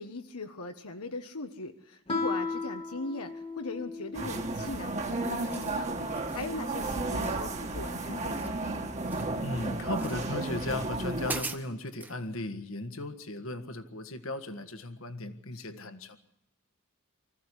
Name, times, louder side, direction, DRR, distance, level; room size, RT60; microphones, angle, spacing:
voice 1, 0.0-8.6 15.5-16.0, left 3 dB, 85° left, 6 dB, 1.4 m, -40 dB
Guitar, 2.1-4.5, left 3 dB, 25° left, 1.8 m, -35 dB
sound 1, 4.1-11.4, right 2 dB, 30° right, 1.7 m, -33 dB
sound 2, 4.6-4.9 5.3-5.8 6.2-6.5 7.2-7.9 8.1-9.4 9.9-10.3 10.8-10.9 11.2-12.2, right 2 dB, 10° right, 1.1 m, -41 dB
voice 2, 9.4-16.2, left 2 dB, 65° left, 10 dB, 1.6 m, -36 dB
25.0 x 15.0 x 10.0 m, 0.80 s
head